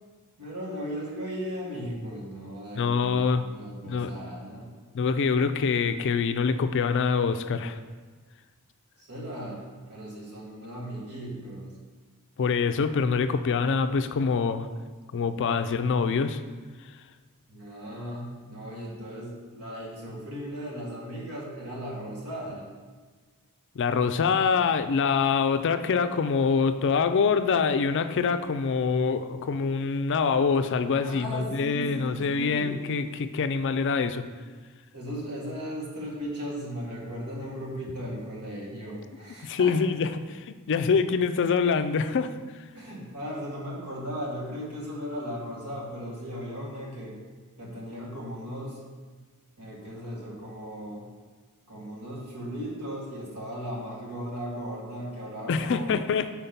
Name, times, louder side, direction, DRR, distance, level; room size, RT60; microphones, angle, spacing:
voice 1, 0.4-4.7 9.0-11.8 17.5-22.7 31.0-32.8 34.9-39.8 42.7-47.2 47.6-48.8 49.6-51.1 51.7-55.9, equal, 90° right, -4 dB, 1.9 m, -37 dB
voice 2, 2.8-3.4 3.9-4.1 4.9-7.8 12.4-14.7 15.1-16.4 23.8-34.2 39.4-42.4 55.5-56.3, left 5 dB, 55° left, 10 dB, 0.4 m, -25 dB
5.3 x 4.4 x 5.7 m, 1.4 s
head